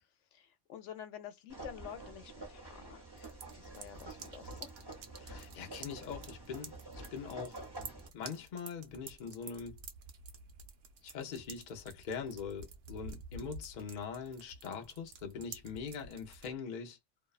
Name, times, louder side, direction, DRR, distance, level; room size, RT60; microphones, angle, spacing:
voice 1, 0.3-4.7, left 9 dB, 80° left, 0.9 m, -49 dB
sound 1, 1.5-8.1, right 2 dB, 25° right, 0.8 m, -48 dB
sound 2, 3.2-16.5, right 4 dB, 80° right, 1.0 m, -51 dB
voice 2, 5.2-7.6 8.1-9.8 11.0-17.0, left 6 dB, 50° left, 0.6 m, -42 dB
2.6 x 2.1 x 2.3 m
omnidirectional pair, 1.2 m